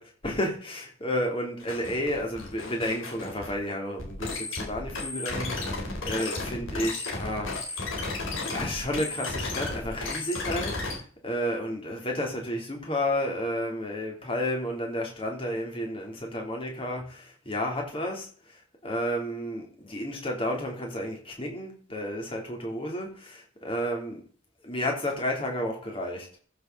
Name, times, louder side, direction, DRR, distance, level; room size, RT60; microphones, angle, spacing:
voice 1, 0.2-7.9 8.5-24.2 24.6-26.3, left 1 dB, 25° left, 1 dB, 3.2 m, -32 dB
sound 1, 1.6-3.5 4.0-11.0, left 2 dB, 60° left, 3.9 m, -34 dB
14.5 x 6.9 x 4.0 m, 0.44 s
head